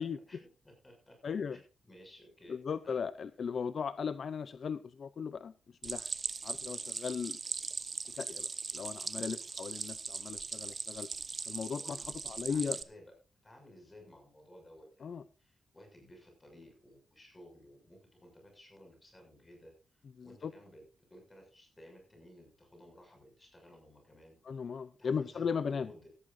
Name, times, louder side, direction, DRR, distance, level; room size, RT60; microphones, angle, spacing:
voice 1, 0.0-1.2 1.5-2.6 2.8-3.0 11.8-12.0 12.5-13.1 13.4-20.8 21.1-24.4 25.0-26.1, equal, 15° left, 2 dB, 6.6 m, -57 dB
voice 2, 1.2-1.6 2.5-5.5 5.8-6.1 6.4-7.4 8.1-8.5 8.7-11.1 11.5-12.0 12.2-12.8 15.0-15.2 20.2-20.5 24.5-25.9, left 6 dB, 50° left, 14 dB, 0.5 m, -37 dB
Stream, 5.8-12.8, right 4 dB, 35° right, 0.9 m, -40 dB
17.5 x 13.5 x 2.7 m, 0.31 s
wide cardioid pair, 150°, 0 cm